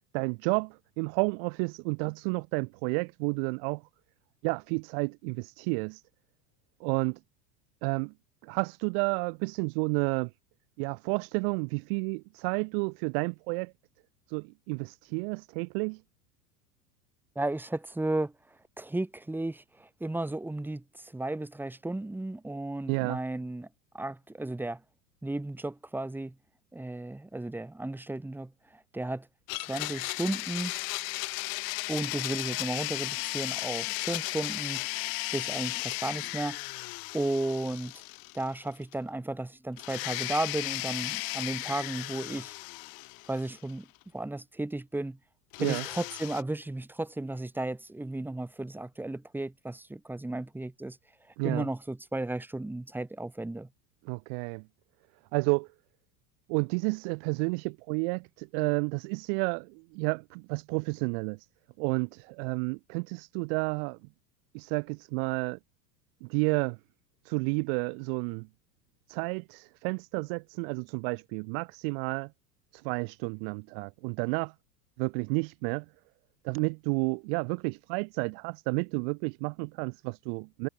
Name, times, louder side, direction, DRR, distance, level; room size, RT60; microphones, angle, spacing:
voice 1, 0.1-3.8 4.4-6.0 6.8-7.2 7.8-8.1 8.4-10.3 10.8-13.7 14.3-16.0 22.9-23.2 45.6-45.8 51.4-51.7 54.1-54.6 55.3-55.7 56.5-61.5 61.8-64.0 64.5-65.6 66.2-66.8 67.2-68.5 69.1-72.3 72.7-74.5 75.0-75.8 76.4-80.7, right 39 dB, 35° right, 0.6 m, -31 dB
voice 2, 17.3-18.3 18.8-23.7 23.9-24.8 25.2-26.3 26.7-29.3 29.6-30.7 31.9-34.9 35.3-36.6 37.1-37.9 38.3-42.5 43.3-43.9 44.1-45.2 45.6-51.0 51.4-53.7, right 2 dB, 5° right, 1.6 m, -34 dB
Domestic sounds home sounds, 29.5-38.6 38.9-39.0 39.8-43.7 45.5-46.4, left 27 dB, 45° left, 2.6 m, -35 dB
figure-of-eight pair, 85°, 49 cm